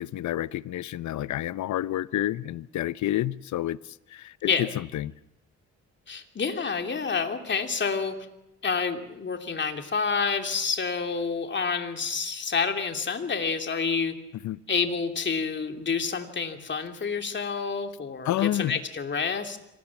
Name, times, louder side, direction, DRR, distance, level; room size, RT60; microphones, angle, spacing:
voice 1, 0.0-5.1 14.4-14.6 18.2-18.8, left 13 dB, 70° left, 0.8 m, -29 dB
voice 2, 6.1-8.1 8.6-14.1 14.7-19.6, left 5 dB, 40° left, 3.0 m, -28 dB
25.5 x 18.5 x 7.3 m
cardioid pair, 90°, 30 cm